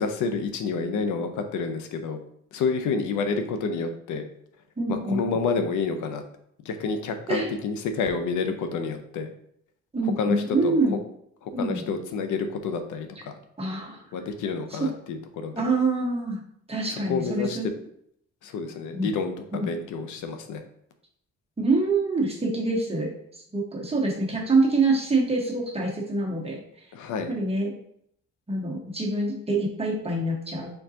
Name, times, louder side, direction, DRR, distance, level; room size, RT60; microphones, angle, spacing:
voice 1, 0.0-2.2 2.5-4.3 4.9-6.2 6.6-9.3 10.2-10.7 11.4-13.3 14.1-15.6 16.9-17.7 18.4-20.6 26.9-27.4, left 4 dB, 80° left, 7 dB, 0.7 m, -29 dB
voice 2, 4.8-5.7 7.3-7.5 9.9-11.0 11.5-11.8 13.6-14.0 14.8-14.9 15.5-16.4 16.7-17.7 18.9-19.1 19.5-19.7 21.6-23.1 23.5-26.6 27.3-27.7 28.5-30.7, right 2 dB, 20° right, -2 dB, 1.4 m, -25 dB
4.4 x 3.8 x 2.8 m, 0.70 s
cardioid pair, 90°, 30 cm